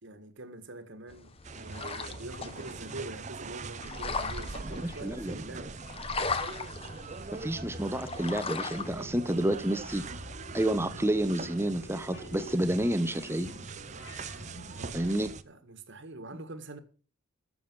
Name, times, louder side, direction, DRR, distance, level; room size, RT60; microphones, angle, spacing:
voice 1, 0.0-5.8 14.7-16.8, right 2 dB, 55° right, 1.7 m, -44 dB
sound 1, 1.1-9.0, left 4 dB, 25° left, 1.0 m, -38 dB
sound 2, 1.4-15.4, right 4 dB, 35° right, 0.6 m, -42 dB
voice 2, 4.7-5.7 7.3-10.1 10.5-13.5 14.9-15.3, right 1 dB, 10° right, 0.9 m, -30 dB
sound 3, 7.5-15.3, equal, 60° left, 2.3 m, -47 dB
12.5 x 7.1 x 6.1 m
head